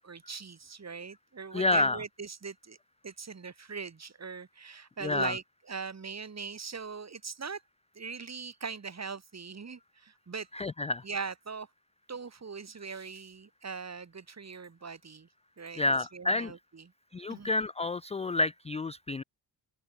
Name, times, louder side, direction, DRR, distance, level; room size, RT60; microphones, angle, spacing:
voice 1, 0.0-2.8 3.0-7.6 8.0-10.5 11.0-11.7 12.1-15.3 15.6-15.8 16.1-16.9 17.3-17.5, right 5 dB, 40° right, 4.0 m, -40 dB
voice 2, 1.5-2.0 5.0-5.3 10.5-11.0 15.8-16.5 17.1-19.2, left 2 dB, 15° left, 0.3 m, -29 dB
open air
cardioid pair, 85°, 41 cm